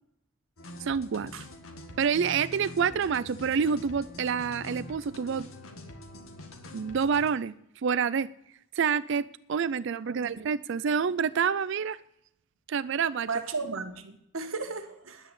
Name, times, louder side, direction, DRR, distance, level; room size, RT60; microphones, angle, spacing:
sound 1, 0.6-7.3, left 1 dB, 85° left, 1.9 m, -44 dB
voice 1, 0.8-1.3 2.0-5.5 6.7-7.5 7.8-8.3 8.7-12.0 12.7-13.4, right 6 dB, 60° right, 0.4 m, -27 dB
voice 2, 10.1-10.4 13.3-15.3, right 4 dB, 80° right, 1.5 m, -35 dB
10.5 x 9.0 x 8.1 m
head